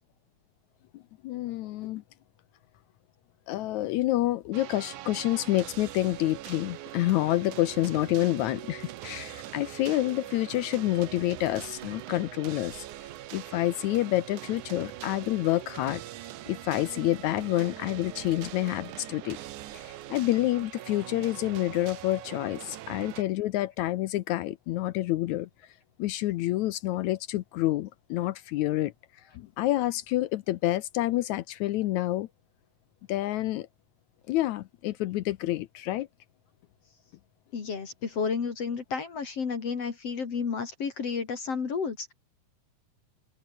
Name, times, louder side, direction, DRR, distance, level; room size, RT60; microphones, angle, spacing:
voice 1, 0.9-2.0 3.5-12.9 13.3-16.0 16.5-19.4 19.7-25.5 26.0-28.9 29.4-32.3 33.1-33.7 34.3-36.1, left 15 dB, 75° left, 1.9 m, -28 dB
sound 1, 4.5-23.2, right 14 dB, 75° right, 2.5 m, -42 dB
voice 2, 37.5-42.1, left 5 dB, 50° left, 3.5 m, -31 dB
open air
omnidirectional pair, 3.7 m